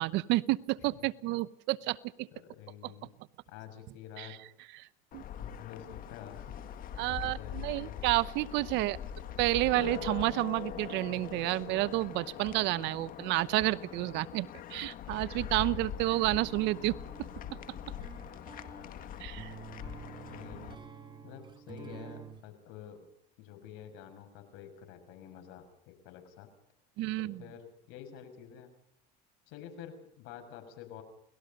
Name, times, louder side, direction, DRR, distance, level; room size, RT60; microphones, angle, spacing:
voice 1, 0.0-2.3 2.8-2.9 4.2-4.3 4.8-4.9 5.1-5.2 7.0-9.0 9.4-17.3 19.2-19.5 27.0-27.4, right 19 dB, 60° right, 17 dB, 0.9 m, -30 dB
voice 2, 2.3-3.1 3.5-4.4 5.4-6.6 7.0-8.1 18.7-19.3 20.3-20.8 21.2-23.1 23.4-26.5 27.2-28.7 29.5-31.0, left 9 dB, 70° left, 6 dB, 6.4 m, -49 dB
sound 1, 5.1-20.7, left 9 dB, 45° left, 2.0 m, -42 dB
sound 2, 16.3-22.5, right 6 dB, 20° right, 2.9 m, -49 dB
28.5 x 19.5 x 5.4 m, 0.70 s
supercardioid pair, 125°, 20 cm